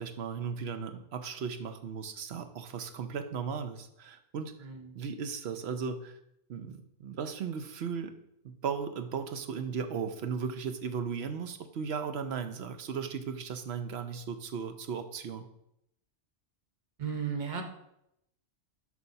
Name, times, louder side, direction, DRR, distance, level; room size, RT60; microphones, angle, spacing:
voice 1, 0.0-6.2 6.5-8.1 8.4-15.5, right 6 dB, 65° right, 8 dB, 0.9 m, -36 dB
voice 2, 4.6-5.0 17.0-17.6, right 6 dB, 40° right, 4 dB, 1.1 m, -35 dB
6.8 x 4.6 x 5.7 m, 0.80 s
omnidirectional pair, 1.2 m